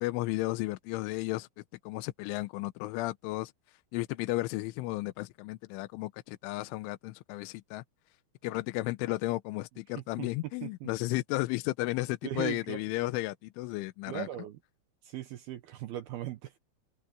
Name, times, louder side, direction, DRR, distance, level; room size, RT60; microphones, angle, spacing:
voice 1, 0.0-1.5 1.8-3.5 3.9-7.8 8.4-14.3, left 19 dB, 90° left, 3.2 m, -33 dB
voice 2, 10.0-10.3 10.6-10.9 12.2-12.8 14.1-14.6 15.0-16.6, right 13 dB, 75° right, 2.3 m, -39 dB
omnidirectional pair, 5.5 m